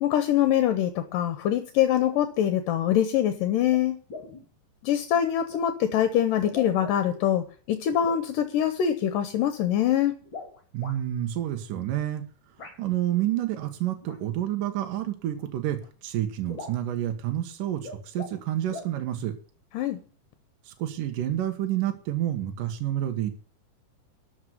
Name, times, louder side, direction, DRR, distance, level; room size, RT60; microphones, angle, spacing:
voice 1, 0.0-4.0 4.8-10.1 19.7-20.0, left 10 dB, 75° left, 9 dB, 2.5 m, -24 dB
sound 1, 3.7-3.8 4.1-4.5 5.5-5.6 6.3-7.2 7.9-8.3 10.2-11.0 12.6-12.8 14.0-14.2 15.4-15.5 15.8-15.9 16.1-16.2 16.5-16.9 17.7-18.4 18.7-18.9, left 3 dB, 35° left, 4.2 m, -41 dB
voice 2, 10.7-12.2 12.6-19.3 20.7-23.3, right 12 dB, 70° right, 5 dB, 2.8 m, -29 dB
12.5 x 6.3 x 9.3 m, 0.41 s
omnidirectional pair, 4.1 m